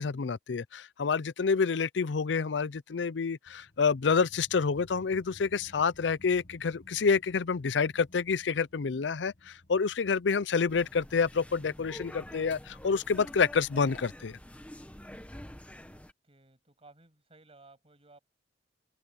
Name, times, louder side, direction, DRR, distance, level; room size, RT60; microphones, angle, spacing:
voice 1, 0.0-14.4, left 5 dB, 80° left, 0.5 m, -28 dB
sound 1, 3.5-14.5, left 1 dB, 45° left, 1.9 m, -58 dB
sound 2, 10.7-16.1, equal, 10° left, 1.6 m, -47 dB
voice 2, 15.9-18.2, right 2 dB, 35° right, 7.7 m, -58 dB
head